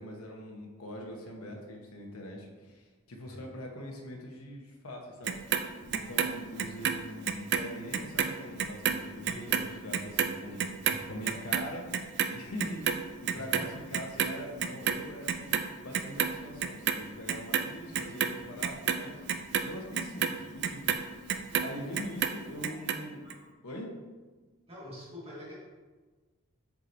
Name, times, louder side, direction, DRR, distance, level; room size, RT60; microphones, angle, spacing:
voice 1, 0.0-5.4 5.9-10.6 11.1-11.9 12.3-19.2 19.6-23.3 23.6-23.9, left 1 dB, 90° left, 0 dB, 1.1 m, -43 dB
Clock, 5.3-7.7 7.9-14.3 14.6-15.7 15.9-17.0 17.3-21.7 22.0-23.0 23.3-23.4, right 8 dB, 50° right, 0.3 m, -30 dB
voice 2, 9.2-9.6 10.9-11.0 13.3-13.7 22.6-22.7 23.2-23.4 24.7-25.5, left 1 dB, 25° right, -7 dB, 1.6 m, -45 dB
7.4 x 4.8 x 2.7 m, 1.3 s
head